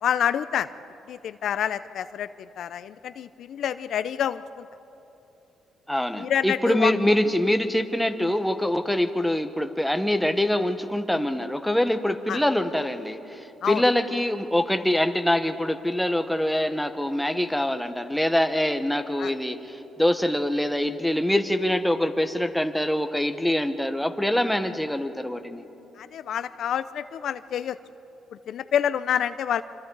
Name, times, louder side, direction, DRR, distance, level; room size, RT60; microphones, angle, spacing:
voice 1, 0.0-0.7 1.1-4.6 6.1-6.9 12.3-12.4 13.6-13.8 19.2-19.3 26.0-27.8 28.5-29.6, left 9 dB, 70° left, 13 dB, 0.5 m, -27 dB
voice 2, 5.9-25.6, left 1 dB, 5° left, 7 dB, 1.2 m, -24 dB
26.5 x 25.5 x 4.0 m, 2.9 s
cardioid pair, 90°, 0 cm